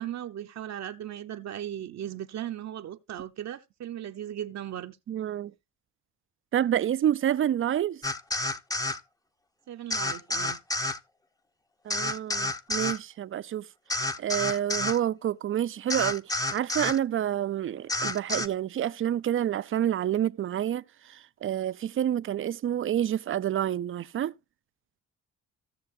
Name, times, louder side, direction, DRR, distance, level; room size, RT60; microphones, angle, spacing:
voice 1, 0.0-5.0 9.7-10.6, right 11 dB, 60° right, 0.8 m, -37 dB
voice 2, 5.1-5.5 6.5-8.0 11.9-13.6 14.2-16.2 16.5-24.3, right 10 dB, 45° right, 0.4 m, -28 dB
sound 1, 8.0-9.0 9.9-11.0 11.9-13.0 13.9-15.0 15.9-17.0 17.9-18.5, left 2 dB, 10° left, 0.7 m, -29 dB
15.5 x 6.8 x 2.6 m
cardioid pair, 90°, 30 cm